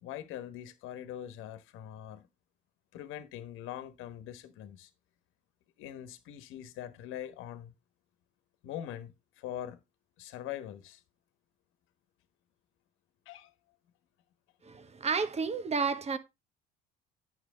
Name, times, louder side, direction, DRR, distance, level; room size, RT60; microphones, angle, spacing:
voice 1, 0.0-2.3 2.9-4.9 5.8-7.7 8.6-9.8 10.2-11.0 13.3-13.5, left 11 dB, 70° left, 1.3 m, -42 dB
voice 2, 14.6-16.2, right 5 dB, 30° right, 1.2 m, -31 dB
9.1 x 6.4 x 3.8 m
supercardioid pair, 80°, 21 cm